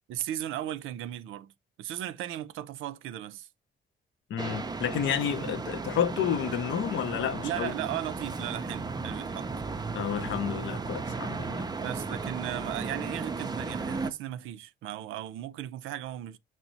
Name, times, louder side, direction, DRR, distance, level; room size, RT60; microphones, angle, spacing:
voice 1, 0.1-1.5 1.8-3.5 7.4-9.5 11.8-16.4, right 12 dB, 85° right, 0.4 m, -36 dB
voice 2, 4.3-7.7 9.9-11.7, left 9 dB, 70° left, 0.6 m, -30 dB
sound 1, 4.4-14.1, right 4 dB, 20° right, 0.4 m, -35 dB
5.9 x 2.0 x 3.9 m
cardioid pair, 90°, 20 cm